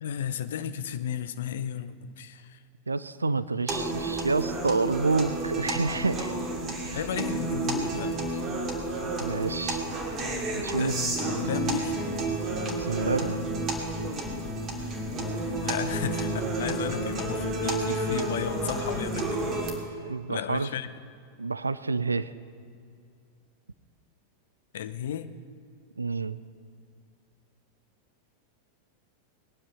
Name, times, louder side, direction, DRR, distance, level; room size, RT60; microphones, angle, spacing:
voice 1, 0.0-2.6 6.9-8.4 10.8-12.0 15.6-16.3 16.6-19.5 19.9-20.0 20.3-20.9 24.7-25.3, left 9 dB, 60° left, 12 dB, 0.7 m, -34 dB
voice 2, 2.9-6.4 6.8-7.0 9.2-9.8 10.5-10.9 12.8-13.5 20.1-20.7 21.4-22.3 26.0-26.4, right 3 dB, 80° right, 16 dB, 0.4 m, -28 dB
sound 1, 3.7-19.7, right 2 dB, 25° right, 2.7 m, -30 dB
20.5 x 9.7 x 5.6 m, 2.3 s
figure-of-eight pair, 90°, 0 cm